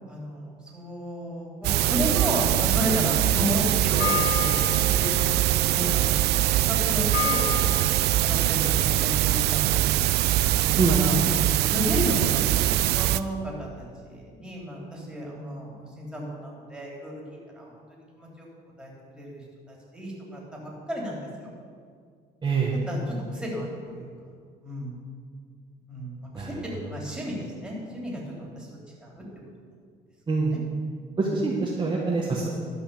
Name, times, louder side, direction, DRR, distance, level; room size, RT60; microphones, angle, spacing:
voice 1, 0.1-6.2 6.5-7.8 8.2-10.1 10.6-11.2 11.7-17.2 17.5-18.5 18.8-20.4 20.9-21.5 22.7-24.1 24.6-25.0 25.9-28.7 29.0-29.2 31.2-31.3, equal, 5° right, -3 dB, 3.2 m, -33 dB
sound 1, 1.6-13.2, right 14 dB, 75° right, 0.4 m, -23 dB
sound 2, 1.8-8.5, left 7 dB, 65° left, 1.7 m, -34 dB
voice 2, 10.8-11.2 22.4-22.7 26.3-26.5 30.3-30.5 31.2-32.5, right 3 dB, 25° right, -4 dB, 1.5 m, -24 dB
12.5 x 5.7 x 6.9 m, 2.1 s
cardioid pair, 110°, 17 cm